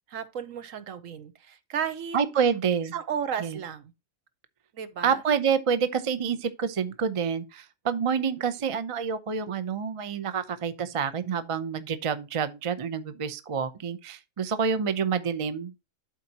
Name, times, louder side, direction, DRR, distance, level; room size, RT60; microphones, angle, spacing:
voice 1, 0.1-2.2 2.9-3.9 4.7-5.2, right 8 dB, 70° right, 1.1 m, -34 dB
voice 2, 2.1-3.0 3.4-3.6 5.0-15.7, right 6 dB, 35° right, 0.5 m, -28 dB
12.0 x 4.3 x 2.8 m
omnidirectional pair, 1.5 m